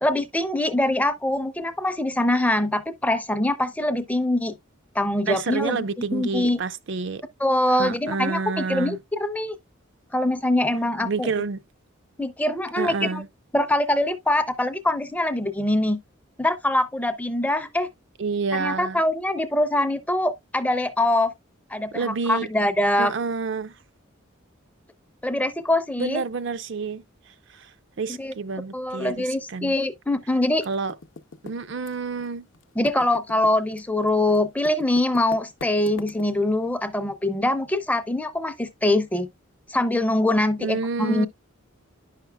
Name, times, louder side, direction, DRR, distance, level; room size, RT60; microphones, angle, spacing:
voice 1, 0.0-4.5 4.9-5.8 6.1-6.6 7.4-9.6 10.1-11.3 12.2-13.2 13.5-16.0 16.4-17.9 18.5-21.3 21.7-23.1 25.2-26.2 28.2-28.3 28.7-30.6 32.8-39.3 39.7-41.3, left 1 dB, 10° left, 0.5 m, -23 dB
voice 2, 5.3-7.2 7.8-9.0 11.0-11.6 12.8-13.3 18.2-19.0 21.9-22.5 23.0-23.7 26.0-27.0 27.5-27.7 28.0-29.8 30.7-30.9 31.4-32.5 40.6-41.3, right 4 dB, 60° right, 0.4 m, -28 dB
Typing, 30.6-32.3 32.5-36.6, left 4 dB, 60° left, 0.6 m, -41 dB
9.7 x 5.8 x 2.2 m
head